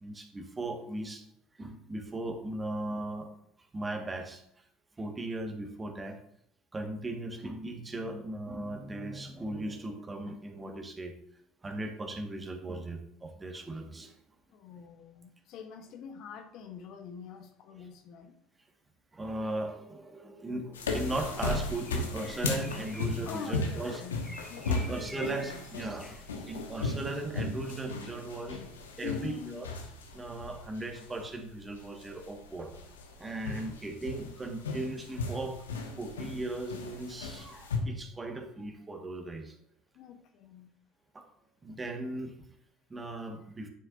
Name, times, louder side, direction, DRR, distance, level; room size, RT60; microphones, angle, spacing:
voice 1, 0.0-1.2 1.6-3.3 3.7-4.4 5.0-6.2 6.7-11.1 11.6-14.1 19.1-24.0 24.7-26.2 26.5-28.6 29.0-29.7 30.1-32.7 33.2-35.6 36.0-39.5 41.1-41.2 41.6-42.3 42.9-43.7, right 2 dB, 20° right, 4 dB, 1.6 m, -37 dB
voice 2, 14.5-18.4 23.3-24.2 24.5-26.0 29.0-29.6 39.9-40.7, left 7 dB, 55° left, 6 dB, 1.0 m, -45 dB
sound 1, 20.7-37.8, left 3 dB, 80° left, 1.1 m, -36 dB
Bird, 21.8-26.7, equal, ahead, 1.2 m, -50 dB
9.3 x 7.3 x 2.6 m, 0.73 s
hypercardioid pair, 65°, 0 cm